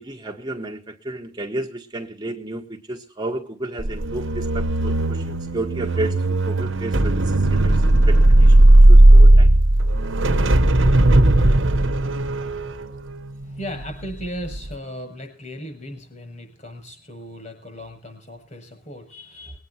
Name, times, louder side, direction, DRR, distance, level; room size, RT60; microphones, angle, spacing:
voice 1, 0.0-7.2 7.6-7.8 8.1-8.5 8.9-9.5, right 1 dB, 20° right, 2 dB, 1.2 m, -32 dB
sound 1, 3.8-14.1 14.5-14.7, right 1 dB, 80° right, 1.2 m, -15 dB
voice 2, 13.3-19.6, equal, 40° left, 6 dB, 7.5 m, -37 dB
21.0 x 9.4 x 5.8 m, 0.36 s
head